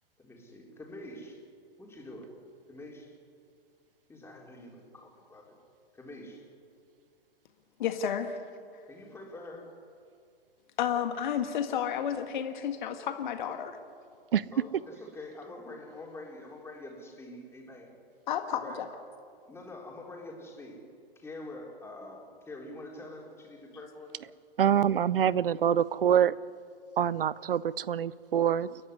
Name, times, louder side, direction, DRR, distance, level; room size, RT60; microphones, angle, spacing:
voice 1, 0.2-1.4 1.8-2.3 2.7-3.1 4.1-5.6 5.9-6.5 8.9-9.7 13.8-13.9 14.5-18.0 18.5-19.0 19.5-20.8 21.1-24.1 28.1-28.2, left 2 dB, 10° left, -1 dB, 4.5 m, -46 dB
voice 2, 7.8-8.4 10.8-13.8 18.3-18.9, left 8 dB, 50° left, 7 dB, 1.7 m, -31 dB
voice 3, 24.6-26.3 27.0-28.8, right 9 dB, 65° right, 21 dB, 0.8 m, -25 dB
29.5 x 11.0 x 9.8 m, 2.3 s
figure-of-eight pair, 110°, 30 cm